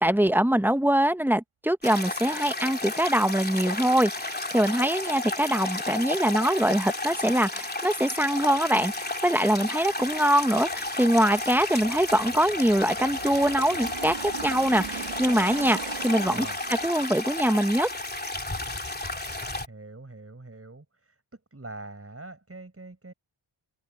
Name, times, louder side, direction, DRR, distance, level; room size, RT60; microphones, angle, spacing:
voice 1, 0.0-16.4 16.8-17.9, right 1 dB, 5° right, 1.2 m, -23 dB
sound 1, 1.8-19.7, left 2 dB, 20° left, 3.1 m, -33 dB
Aircraft, 7.0-7.1 7.4-18.7 19.0-19.1, right 7 dB, 85° right, 2.6 m, -42 dB
voice 2, 19.7-21.2 21.5-23.1, right 2 dB, 30° right, 5.7 m, -43 dB
cardioid pair, 55°, 48 cm